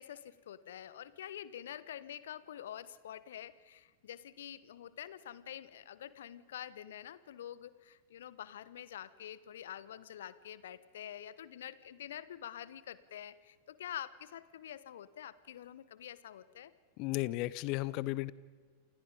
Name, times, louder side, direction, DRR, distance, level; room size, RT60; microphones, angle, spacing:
voice 1, 0.0-16.7, left 10 dB, 60° left, 17 dB, 1.3 m, -47 dB
voice 2, 17.0-18.3, left 19 dB, 40° left, 20 dB, 0.8 m, -34 dB
29.0 x 28.0 x 5.3 m, 1.5 s
figure-of-eight pair, 90°, 0 cm